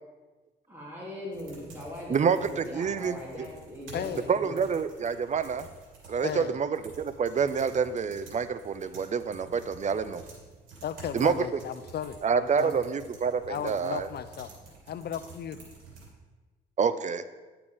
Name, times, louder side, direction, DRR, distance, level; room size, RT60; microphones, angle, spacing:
voice 1, 0.7-4.6, left 1 dB, 10° right, -5 dB, 2.9 m, -40 dB
sound 1, 1.3-16.1, right 4 dB, 90° right, 2.8 m, -50 dB
voice 2, 2.1-3.5 4.3-5.7 6.1-10.2 11.1-11.6 12.2-14.1 16.8-17.2, right 6 dB, 35° right, 13 dB, 0.5 m, -28 dB
voice 3, 3.9-4.2 6.2-6.6 10.8-12.8 13.5-14.5 14.9-15.6, left 9 dB, 55° left, 12 dB, 0.6 m, -35 dB
10.5 x 6.8 x 3.5 m, 1.3 s
cardioid pair, 90°, 20 cm